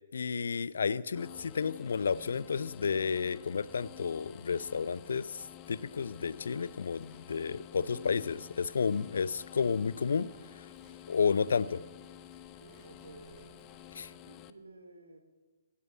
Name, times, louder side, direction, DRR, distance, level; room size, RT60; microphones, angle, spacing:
voice 1, 0.1-10.3 11.1-11.8 13.9-14.1, left 6 dB, 70° left, 18 dB, 0.5 m, -31 dB
sound 1, 1.1-14.5, left 12 dB, 25° left, 0.7 m, -51 dB
Livestock farm animals working animals, 2.7-14.1, left 2 dB, ahead, 5.3 m, -64 dB
voice 2, 12.6-13.7 14.1-15.2, right 3 dB, 80° right, 6 dB, 2.8 m, -54 dB
17.0 x 8.4 x 8.5 m, 1.3 s
figure-of-eight pair, 130°, 0 cm